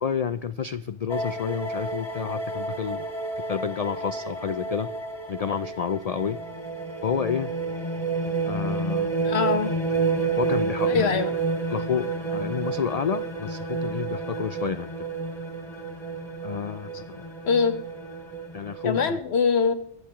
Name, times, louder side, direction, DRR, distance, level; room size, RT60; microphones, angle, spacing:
voice 1, 0.0-3.1 3.5-4.9 5.3-6.4 7.0-7.5 8.4-9.1 10.4-11.2 11.7-15.1 16.4-17.2 18.5-19.2, left 7 dB, 80° left, 13 dB, 0.3 m, -30 dB
sound 1, 1.1-19.1, right 4 dB, 20° left, 2.4 m, -30 dB
voice 2, 9.2-9.7 10.9-11.3 17.4-17.8 18.8-19.7, left 5 dB, 60° left, 9 dB, 1.4 m, -23 dB
23.5 x 7.9 x 3.0 m, 0.74 s
omnidirectional pair, 1.2 m